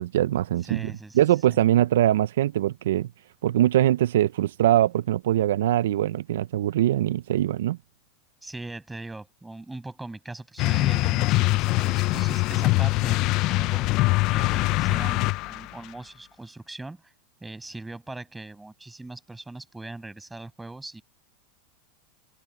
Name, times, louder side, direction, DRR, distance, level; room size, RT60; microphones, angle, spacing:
voice 1, 0.0-3.1 3.4-7.8, right 13 dB, 80° right, 0.4 m, -22 dB
voice 2, 0.7-1.2 1.5-1.6 8.4-13.2 13.5-17.1 17.4-21.0, right 2 dB, 5° right, 6.8 m, -40 dB
sound 1, 10.6-15.7, left 21 dB, 50° left, 0.4 m, -23 dB
open air
supercardioid pair, 125°, 0 cm